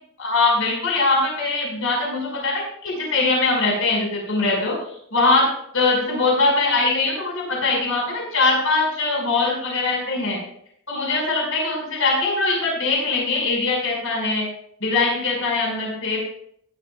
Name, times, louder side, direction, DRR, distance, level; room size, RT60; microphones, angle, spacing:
voice 1, 0.2-4.7 5.1-5.5 5.7-10.4 10.9-14.5 14.8-16.2, left 3 dB, 65° left, -2 dB, 5.5 m, -21 dB
17.0 x 11.5 x 2.4 m, 0.67 s
head